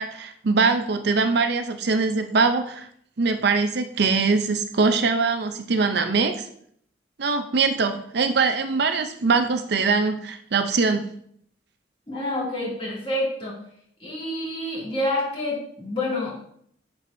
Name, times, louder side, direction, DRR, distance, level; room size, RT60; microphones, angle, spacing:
voice 1, 0.0-2.9 3.2-6.3 7.2-11.0, right 4 dB, 60° right, 8 dB, 0.5 m, -22 dB
voice 2, 12.1-13.6 14.0-16.3, left 1 dB, 30° left, -5 dB, 2.5 m, -28 dB
11.0 x 4.6 x 2.7 m, 0.66 s
head